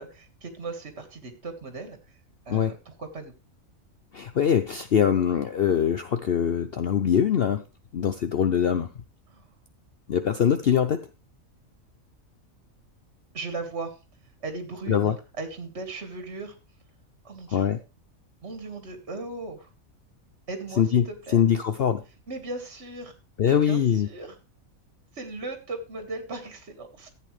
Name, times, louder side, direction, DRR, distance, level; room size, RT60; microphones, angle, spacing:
voice 1, 0.0-2.0 2.5-3.3 9.3-9.5 13.3-14.0 14.4-16.5 17.2-17.7 18.4-19.7 20.5-21.4 22.3-23.1 23.5-24.4 25.1-27.1, right 3 dB, 50° right, 6 dB, 2.0 m, -37 dB
voice 2, 4.1-7.6 7.9-8.9 10.1-11.0 14.9-15.1 17.5-17.8 20.8-21.0 21.3-22.0 23.4-24.1, left 8 dB, 55° left, 9 dB, 0.8 m, -23 dB
14.5 x 8.4 x 3.2 m, 0.30 s
omnidirectional pair, 1.4 m